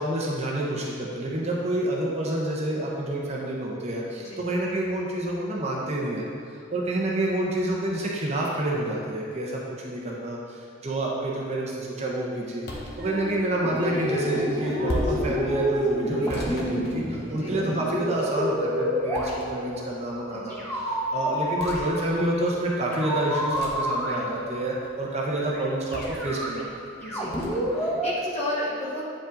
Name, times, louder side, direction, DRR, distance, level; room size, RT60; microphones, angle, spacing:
voice 1, 0.0-12.7 13.0-26.6, right 1 dB, 35° right, -3 dB, 0.9 m, -28 dB
sound 1, 12.6-13.0 14.9-15.3 16.3-17.5 19.1-19.7 21.6-21.8 23.5-23.9 25.9-26.3 27.3-27.6, equal, 55° left, 1.0 m, -34 dB
sound 2, 12.6-13.5 13.8-18.4, equal, 55° right, 1.9 m, -41 dB
sound 3, 13.6-19.8 20.5-22.3 22.9-24.6 25.4-25.6 25.9-28.1, equal, 10° left, 1.1 m, -29 dB
voice 2, 20.3-20.6 27.0-29.0, left 1 dB, 35° left, -6 dB, 1.4 m, -34 dB
8.5 x 5.1 x 3.9 m, 2.4 s
head